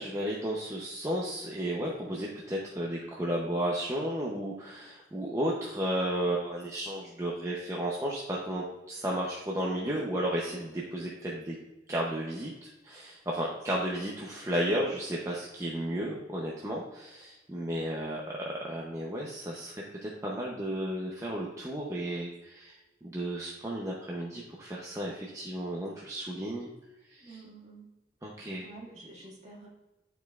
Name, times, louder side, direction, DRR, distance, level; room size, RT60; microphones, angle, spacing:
voice 1, 0.0-11.6 11.9-22.8 23.0-26.7 27.1-27.4 28.2-28.6, right 1 dB, 15° right, -3 dB, 0.6 m, -33 dB
voice 2, 27.2-27.8 28.6-29.7, right 2 dB, 35° right, -4 dB, 1.8 m, -49 dB
9.7 x 4.6 x 2.3 m, 1.1 s
head